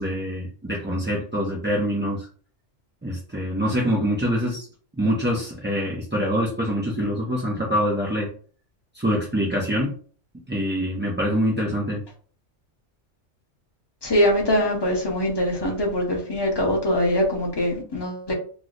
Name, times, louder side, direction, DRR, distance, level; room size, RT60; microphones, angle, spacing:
voice 1, 0.0-2.3 3.0-4.7 4.9-8.3 8.9-10.0 10.5-12.0, equal, 15° right, 0.4 m, -25 dB
voice 2, 14.0-18.3, left 1 dB, 25° left, 0.8 m, -23 dB
3.1 x 2.0 x 3.8 m
omnidirectional pair, 1.2 m